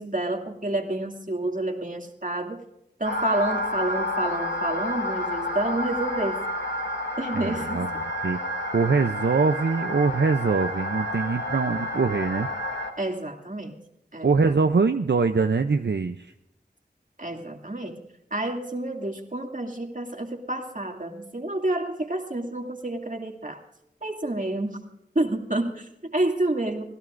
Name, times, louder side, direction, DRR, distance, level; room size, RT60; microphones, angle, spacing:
voice 1, 0.0-2.6 3.0-6.4 7.2-7.9 13.0-13.7 14.1-14.5 17.2-18.0 18.3-23.6 24.0-24.8 25.1-26.8, right 1 dB, 45° right, 2 dB, 2.5 m, -29 dB
sound 1, 3.0-12.9, left 1 dB, 85° left, 2.5 m, -30 dB
voice 2, 7.3-7.9 8.2-8.4 8.7-12.5 14.2-16.3, right 4 dB, 75° right, 7 dB, 0.6 m, -23 dB
26.5 x 16.0 x 2.6 m, 0.84 s
wide cardioid pair, 40°, 18 cm